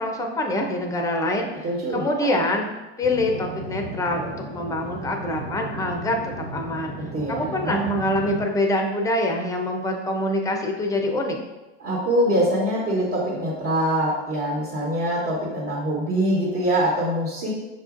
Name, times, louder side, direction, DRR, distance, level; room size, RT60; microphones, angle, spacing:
voice 1, 0.0-1.5 1.9-2.7 3.0-6.9 7.3-11.4, left 1 dB, 10° left, 2 dB, 0.5 m, -25 dB
voice 2, 1.6-2.3 7.1-7.8 11.8-17.5, equal, 45° right, -4 dB, 1.2 m, -24 dB
sound 1, 3.0-8.4, right 1 dB, 75° right, 1.4 m, -35 dB
6.1 x 2.4 x 2.5 m, 1.1 s
hypercardioid pair, 100°, 34 cm